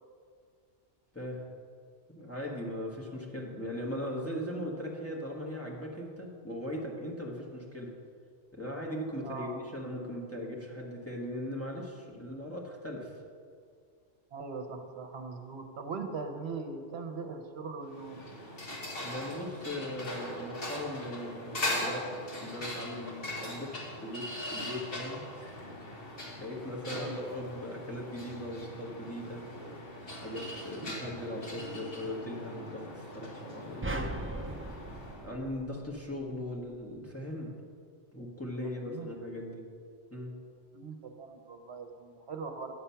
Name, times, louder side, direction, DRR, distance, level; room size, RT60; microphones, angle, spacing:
voice 1, 1.1-1.5 2.1-7.9 8.5-13.2 19.0-22.1 22.4-25.5 26.3-29.5 30.2-34.5 35.2-37.5 38.1-39.7 40.1-40.3, left 1 dB, 10° left, -3 dB, 1.4 m, -39 dB
voice 2, 9.2-9.6 14.3-18.2 26.9-27.2 38.6-39.2 40.7-42.8, right 4 dB, 70° right, 5 dB, 1.1 m, -40 dB
sound 1, 17.9-35.3, left 1 dB, 55° left, 1.9 m, -40 dB
sound 2, 33.8-36.2, right 1 dB, 20° right, 0.4 m, -38 dB
9.5 x 7.8 x 5.7 m, 2.1 s
omnidirectional pair, 1.2 m